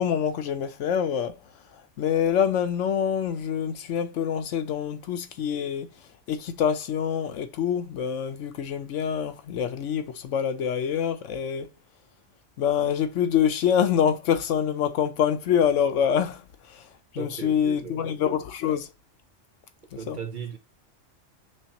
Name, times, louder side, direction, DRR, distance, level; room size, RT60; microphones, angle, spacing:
voice 1, 0.0-1.4 2.0-5.9 6.3-11.7 12.6-16.4 16.7-16.8 17.1-18.9 20.1-20.2, left 8 dB, 75° left, 1.0 m, -25 dB
voice 2, 17.2-18.2 20.0-20.6, right 7 dB, 45° right, 0.9 m, -37 dB
6.3 x 2.7 x 2.9 m
omnidirectional pair, 1.3 m